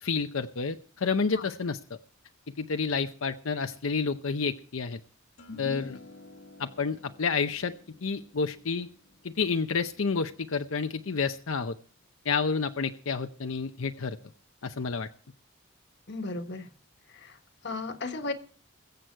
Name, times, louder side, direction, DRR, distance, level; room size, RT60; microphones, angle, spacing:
voice 1, 0.0-2.0 2.6-5.0 5.6-6.0 6.6-7.7 8.0-8.9 9.2-11.8 12.2-14.2 14.6-15.1, left 5 dB, 90° left, 0.7 m, -29 dB
sound 1, 5.4-11.9, left 4 dB, 75° left, 2.2 m, -49 dB
voice 2, 16.1-16.7 17.1-18.3, left 3 dB, 60° left, 1.5 m, -36 dB
22.0 x 7.8 x 4.6 m
head